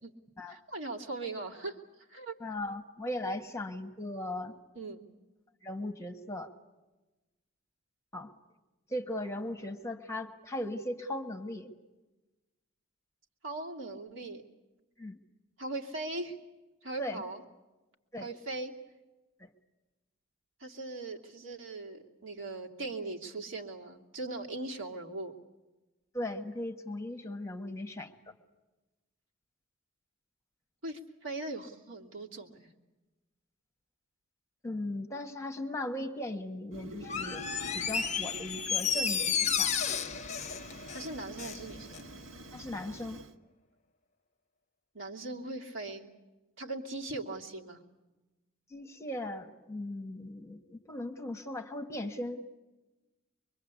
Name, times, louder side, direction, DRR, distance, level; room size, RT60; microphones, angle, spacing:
voice 1, 0.5-1.8 2.1-2.3 4.7-5.0 13.4-14.4 15.6-16.4 16.8-17.4 18.2-18.7 20.6-25.3 30.8-32.6 40.9-42.1 44.9-46.1 46.6-47.8, right 2 dB, 70° right, 1 dB, 2.7 m, -39 dB
voice 2, 2.4-4.6 5.6-6.5 8.1-8.3 8.9-11.7 15.0-15.2 17.0-17.2 18.1-18.3 19.4-19.5 26.1-28.1 34.6-37.5 37.7-39.7 42.5-43.2 48.7-52.4, left 1 dB, 15° left, 5 dB, 1.5 m, -38 dB
Fire, 36.7-43.3, right 1 dB, 85° right, 1.2 m, -47 dB
Door, 37.0-41.6 41.9-42.0, left 7 dB, 35° left, 0.8 m, -32 dB
24.0 x 23.5 x 8.3 m, 1.1 s
head